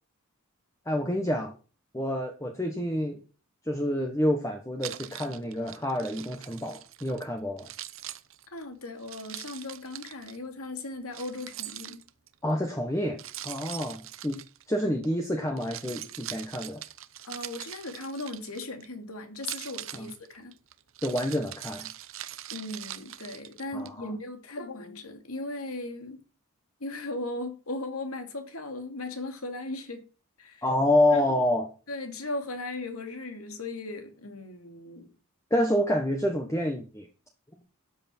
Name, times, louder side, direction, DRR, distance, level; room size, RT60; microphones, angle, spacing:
voice 1, 0.9-1.5 1.9-3.2 3.7-7.7 12.4-13.2 13.4-14.4 14.7-16.8 19.9-20.1 21.0-21.9 23.7-24.1 30.6-31.7 35.5-37.1, left 1 dB, 15° left, 1.3 m, -28 dB
Keys jangling, 4.8-7.2 7.6-10.4 11.1-12.3 13.2-15.1 15.5-18.9 19.3-23.9, right 13 dB, 65° right, 0.8 m, -42 dB
voice 2, 8.5-12.0 17.2-20.5 22.5-26.2 26.8-30.0 30.4-30.7 31.1-31.2 31.9-35.1, left 2 dB, 80° left, 2.6 m, -37 dB
13.0 x 8.3 x 4.5 m
head